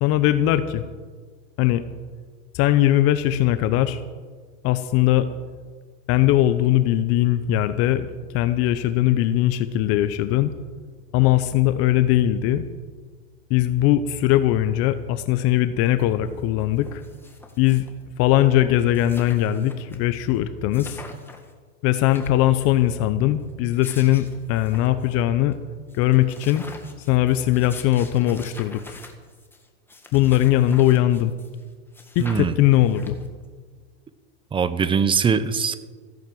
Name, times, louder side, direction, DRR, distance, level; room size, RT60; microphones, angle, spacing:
voice 1, 0.0-0.8 1.6-1.8 2.5-4.0 4.6-5.3 6.1-10.5 11.1-12.6 13.5-17.0 17.6-17.8 18.2-21.0 21.8-25.6 25.9-26.6 27.0-29.0 30.1-31.3 32.1-33.2, left 13 dB, 45° left, 11 dB, 0.8 m, -20 dB
sound 1, 16.0-16.1 16.3-18.0 18.5-18.6 18.7-20.0 20.3-20.4 20.7-21.5 21.9-22.8 23.5-25.1 25.5-25.6 25.9-31.6 31.9-33.5, left 2 dB, 5° left, 1.7 m, -45 dB
voice 2, 32.2-32.5 34.5-35.8, right 6 dB, 15° right, 14 dB, 0.7 m, -21 dB
15.0 x 10.5 x 7.7 m, 1.5 s
supercardioid pair, 135°, 34 cm